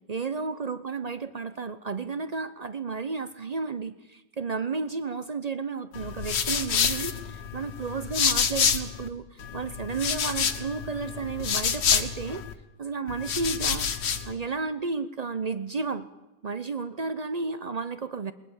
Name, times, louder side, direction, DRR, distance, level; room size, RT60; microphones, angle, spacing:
voice 1, 0.1-12.4 12.8-13.9 14.3-16.1 16.4-18.3, right 4 dB, 85° right, 12 dB, 0.3 m, -32 dB
sound 1, 5.9-9.1 9.4-12.5 13.1-14.3, left 7 dB, 80° left, 2.0 m, -28 dB
21.0 x 20.0 x 7.2 m, 1.1 s
omnidirectional pair, 1.9 m